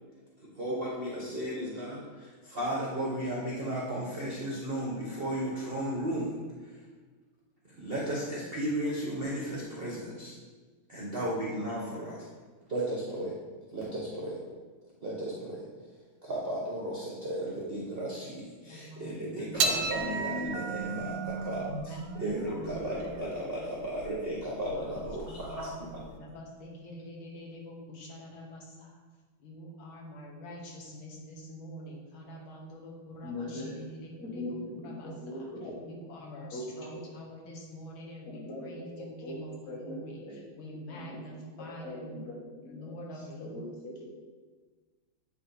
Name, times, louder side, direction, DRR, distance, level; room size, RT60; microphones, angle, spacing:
voice 1, 0.5-6.4 6.6-6.8 7.6-10.3 10.9-12.2 12.7-13.4 13.7-14.4 15.0-15.7 16.2-26.0, right 1 dB, 45° right, -5 dB, 0.7 m, -35 dB
voice 2, 18.7-20.6 20.8-23.5 24.7-29.0 29.4-35.5 35.9-42.2 42.6-43.7, equal, 75° left, -1 dB, 1.7 m, -46 dB
sound 1, 19.6-26.1, right 4 dB, 75° right, 1.2 m, -35 dB
voice 3, 33.2-33.7 34.2-35.7 36.5-37.0 38.2-39.4 39.7-40.4 41.0-41.2 41.8-42.9 43.4-44.1, left 1 dB, 45° left, -6 dB, 1.9 m, -41 dB
8.6 x 2.9 x 4.0 m, 1.4 s
omnidirectional pair, 2.3 m